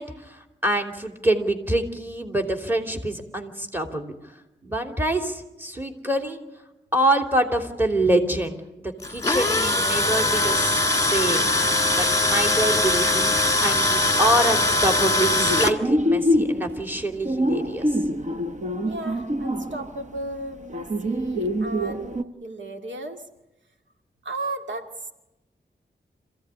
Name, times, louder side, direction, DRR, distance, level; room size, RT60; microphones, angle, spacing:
voice 1, 0.0-4.1 4.6-6.4 6.9-11.4 11.7-13.3 13.6-18.0, right 1 dB, 10° right, 5 dB, 3.0 m, -26 dB
Tools, 9.0-15.7, left 2 dB, 20° left, 1.8 m, -21 dB
sound 1, 12.0-12.1 12.2-15.0 15.3-22.2, equal, 40° right, 1.1 m, -26 dB
voice 2, 18.8-23.3 24.2-25.1, right 2 dB, 80° right, 5 dB, 2.1 m, -35 dB
26.5 x 16.0 x 9.8 m, 0.97 s
wide cardioid pair, 95°, 19 cm